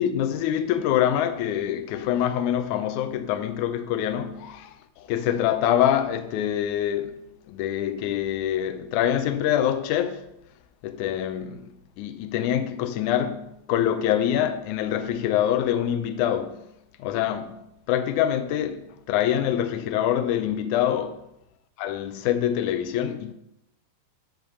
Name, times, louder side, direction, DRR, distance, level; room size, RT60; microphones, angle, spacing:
voice 1, 0.0-10.3 10.8-16.6 17.0-21.3 21.8-23.3, left 10 dB, 85° left, 1.7 m, -25 dB
12.5 x 5.9 x 5.5 m
omnidirectional pair, 4.4 m